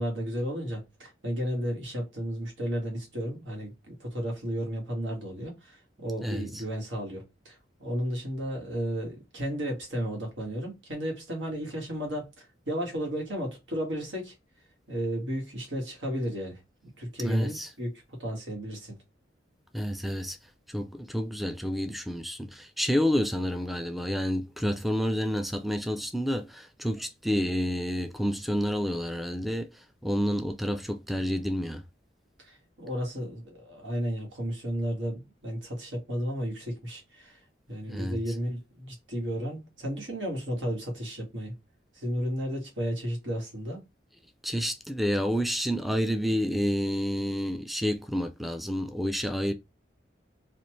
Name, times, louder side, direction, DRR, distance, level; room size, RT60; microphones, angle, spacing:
voice 1, 0.0-14.3 14.9-16.6 17.0-17.9 18.2-19.0 32.4-37.4 37.7-41.6 42.0-43.8, equal, 80° right, 1.8 m, -33 dB
voice 2, 6.2-6.6 17.2-17.7 19.7-20.4 20.7-31.8 37.9-38.4 44.4-49.5, equal, ahead, 0.3 m, -29 dB
4.2 x 2.5 x 3.1 m
head